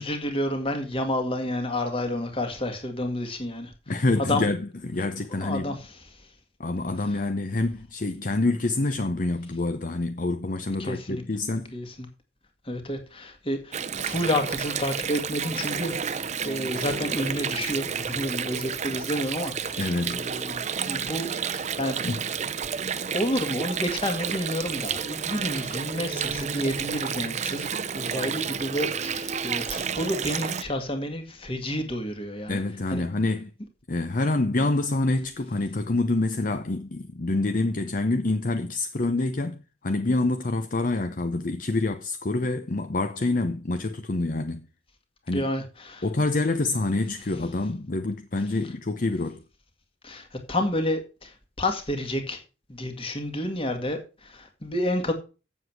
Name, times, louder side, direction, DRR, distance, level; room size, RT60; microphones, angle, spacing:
voice 1, 0.0-3.7 4.3-4.5 5.4-6.0 10.8-11.2 11.7-12.1 12.7-22.0 23.1-27.7 27.9-32.6 32.9-33.0 45.3-46.0 50.0-52.4 52.7-55.1, left 1 dB, 30° left, 2.0 m, -30 dB
voice 2, 3.9-5.8 6.6-11.7 19.8-20.2 22.0-22.3 32.5-33.5 33.9-44.7 45.3-45.5 46.0-49.4, left 2 dB, 45° left, 0.7 m, -27 dB
Water, 13.7-30.6, right 7 dB, 40° right, 0.6 m, -31 dB
8.1 x 7.5 x 5.9 m
head